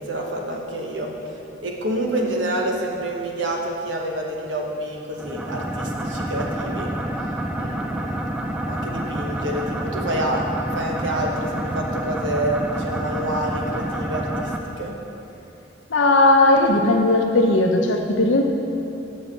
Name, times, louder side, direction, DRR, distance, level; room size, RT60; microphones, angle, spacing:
voice 1, 0.0-1.3 1.6-6.9 7.6-10.4 10.7-14.9, right 1 dB, 80° right, 0 dB, 1.1 m, -28 dB
Synthetic synth sound, 5.2-14.6, right 1 dB, 5° right, 0.4 m, -28 dB
voice 2, 15.9-18.4, left 2 dB, 85° left, 3 dB, 0.8 m, -17 dB
6.4 x 5.4 x 7.1 m, 2.8 s
head